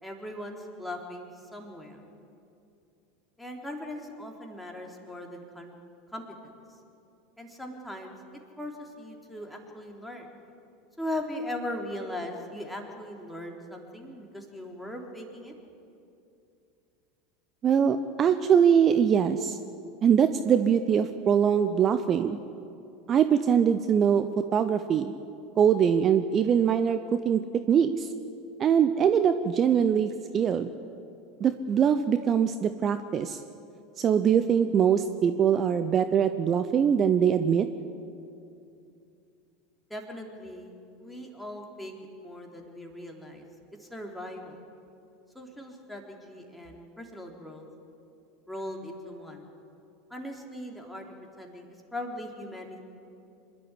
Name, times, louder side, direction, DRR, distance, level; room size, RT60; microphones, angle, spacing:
voice 1, 0.0-2.0 3.4-5.7 6.1-6.5 7.4-8.2 8.6-10.3 11.0-15.5 39.9-41.9 42.2-43.4 43.8-44.6 45.3-47.7 48.5-49.5 50.1-52.8, left 1 dB, 5° left, 0 dB, 3.7 m, -39 dB
voice 2, 17.6-19.6 20.0-22.4 23.1-25.1 25.6-27.0 27.2-27.4 27.7-28.1 28.6-30.7 31.4-33.4 34.0-37.7, right 8 dB, 35° right, 10 dB, 0.8 m, -23 dB
25.5 x 12.0 x 9.9 m, 2.6 s
figure-of-eight pair, 80°, 0 cm